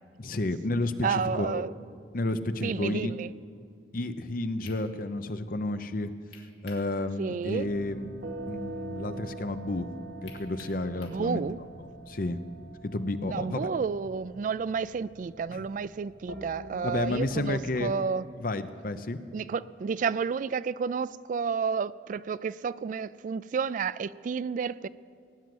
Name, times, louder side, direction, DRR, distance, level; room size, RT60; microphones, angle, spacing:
voice 1, 0.2-1.6 2.1-3.1 3.9-6.1 6.6-8.1 8.5-9.9 10.2-11.4 11.8-12.4 12.8-13.7 15.5-15.6 16.8-17.9 18.4-19.2, left 2 dB, 55° left, 10 dB, 0.8 m, -31 dB
voice 2, 1.0-1.7 2.6-3.3 7.2-7.7 11.1-11.6 13.3-18.2 19.3-24.9, right 6 dB, 45° right, 18 dB, 0.3 m, -31 dB
sound 1, 4.6-4.8 6.3-6.9 7.3-7.4 10.3-11.2, left 5 dB, 75° left, 2.6 m, -50 dB
sound 2, 7.6-17.6, right 1 dB, 80° right, 1.1 m, -44 dB
18.0 x 9.4 x 7.8 m, 2.4 s
head